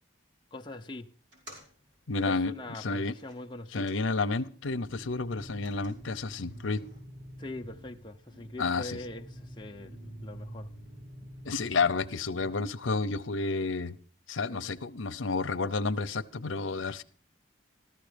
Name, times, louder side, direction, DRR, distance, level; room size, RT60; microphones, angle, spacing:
voice 1, 0.5-1.1 2.2-3.9 7.4-10.0 10.2-10.7 14.5-14.8, left 2 dB, 25° left, 0.7 m, -42 dB
sound 1, 1.2-4.7 5.0-7.0, equal, 65° right, 4.8 m, -57 dB
voice 2, 2.1-3.1 3.7-6.8 8.6-9.0 11.4-14.0 14.3-17.0, left 3 dB, 85° left, 0.8 m, -30 dB
sound 2, 4.6-12.6, equal, 50° right, 2.2 m, -47 dB
14.0 x 13.0 x 5.1 m
head